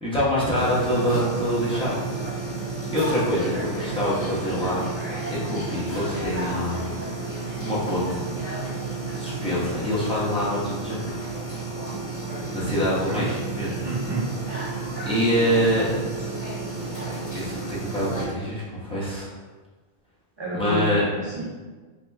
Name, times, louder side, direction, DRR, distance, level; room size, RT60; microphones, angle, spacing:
voice 1, 0.0-2.3 2.9-4.8 5.3-7.0 7.6-8.2 9.1-11.2 12.5-13.8 15.1-15.9 17.1-19.3 20.5-21.0, equal, 5° left, -9 dB, 0.9 m, -25 dB
sound 1, 0.5-18.2, right 3 dB, 40° left, 1.5 m, -31 dB
voice 2, 13.8-14.3 20.4-21.4, right 1 dB, 40° right, -6 dB, 0.4 m, -30 dB
2.9 x 2.9 x 3.4 m, 1.4 s
omnidirectional pair, 1.0 m